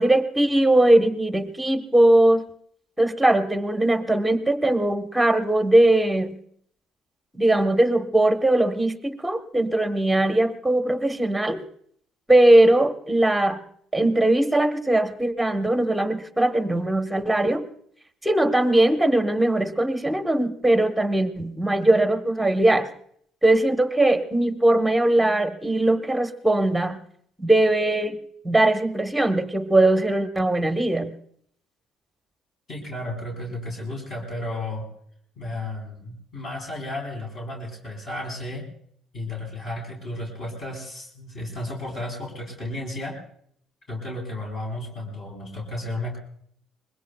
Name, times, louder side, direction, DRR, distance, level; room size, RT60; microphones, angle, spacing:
voice 1, 0.0-2.4 3.0-6.4 7.3-11.6 12.3-13.6 13.9-17.6 18.2-22.9 23.4-27.0 27.4-28.2 28.4-31.1, right 1 dB, 5° right, 6 dB, 1.1 m, -20 dB
voice 2, 32.7-34.9 35.4-38.6 39.1-43.2 43.9-46.2, left 1 dB, 45° left, 0 dB, 4.2 m, -33 dB
25.0 x 21.0 x 2.3 m, 0.65 s
cardioid pair, 135°, 0 cm